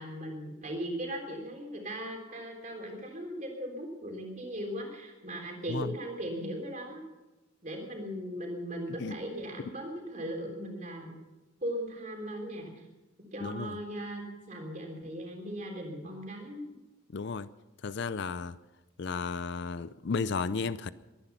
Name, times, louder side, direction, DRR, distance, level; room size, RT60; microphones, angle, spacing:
voice 1, 0.0-7.0 7.6-11.2 11.6-12.9 13.3-16.6, equal, 35° right, 3.6 m, -38 dB
voice 2, 13.4-13.8 17.1-17.5 17.8-18.6 19.0-20.9, left 4 dB, 55° left, 0.4 m, -33 dB
22.5 x 10.0 x 5.7 m
head